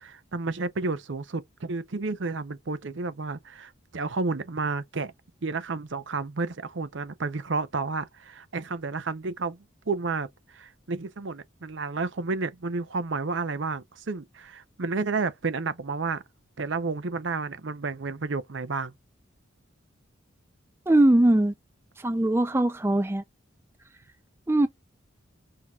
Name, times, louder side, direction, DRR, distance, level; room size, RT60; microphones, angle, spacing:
voice 1, 0.0-5.1 5.4-9.6 9.9-16.2 16.6-18.9, right 4 dB, 65° right, 0.7 m, -31 dB
voice 2, 20.9-21.5 22.0-23.2 24.5-24.7, right 1 dB, 10° right, 0.4 m, -21 dB
5.7 x 3.7 x 2.4 m
head